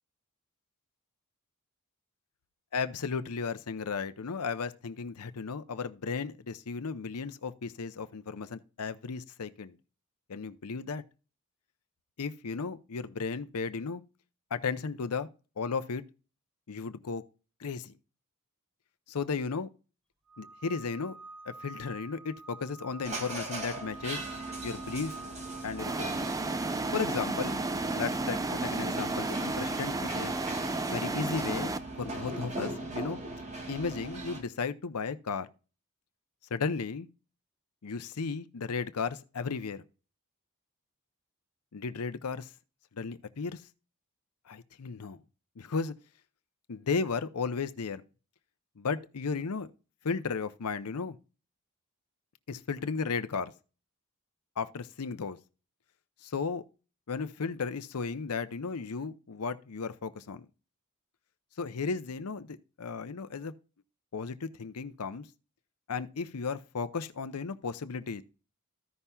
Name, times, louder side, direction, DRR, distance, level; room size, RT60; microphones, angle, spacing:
voice 1, 2.7-9.8 10.3-11.0 12.2-14.0 14.5-15.3 15.6-16.0 16.7-17.2 17.6-17.9 19.1-19.7 20.4-21.2 21.5-24.2 24.6-25.1 25.6-26.2 26.9-27.6 27.9-30.3 30.9-33.2 33.7-35.5 36.5-37.1 37.8-39.8 41.7-42.5 42.9-43.6 44.5-45.2 45.6-45.9 46.7-48.0 48.8-49.7 50.0-51.2 52.5-53.5 54.6-55.4 56.2-56.6 57.1-60.5 61.6-63.5 64.1-65.3 65.9-68.2, left 5 dB, 80° left, 0.6 m, -35 dB
sound 1, 20.3-28.0, right 3 dB, ahead, 3.1 m, -49 dB
sound 2, 23.0-34.4, right 2 dB, 30° right, 2.3 m, -40 dB
sound 3, 25.8-31.8, right 2 dB, 15° right, 0.5 m, -32 dB
15.0 x 5.6 x 2.3 m
head